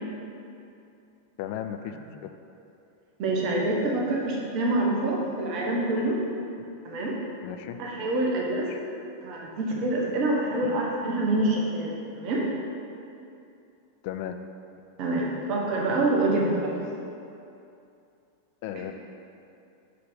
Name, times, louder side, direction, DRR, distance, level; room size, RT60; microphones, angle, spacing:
voice 1, 1.4-2.0 2.2-2.3 7.4-7.8 8.7-8.8 10.7-10.8 14.0-14.4 18.6-18.9, left 10 dB, 45° left, 8 dB, 0.3 m, -35 dB
voice 2, 3.2-6.2 6.8-7.2 7.8-8.7 9.2-12.4 15.0-16.8, right 2 dB, 40° right, -2 dB, 1.0 m, -26 dB
5.5 x 4.1 x 5.1 m, 2.6 s
figure-of-eight pair, 90°, 0 cm